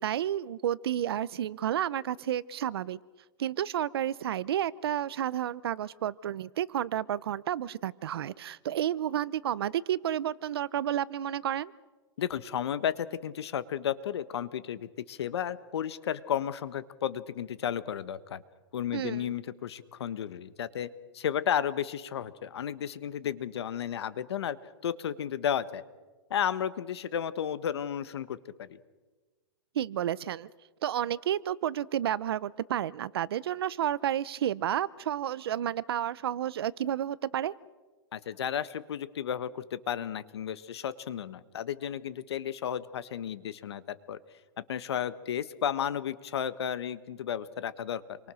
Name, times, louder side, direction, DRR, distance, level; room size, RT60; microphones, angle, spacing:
voice 1, 0.0-3.0 3.4-11.7 18.9-19.4 29.7-30.5 30.8-37.5, right 11 dB, 60° right, 20 dB, 0.7 m, -31 dB
voice 2, 12.2-18.4 18.7-20.9 21.1-24.6 24.8-25.8 26.3-28.8 38.1-44.2 44.6-48.2, left 9 dB, 65° left, 15 dB, 1.4 m, -33 dB
29.0 x 24.0 x 6.4 m, 1.3 s
hypercardioid pair, 175°, 14 cm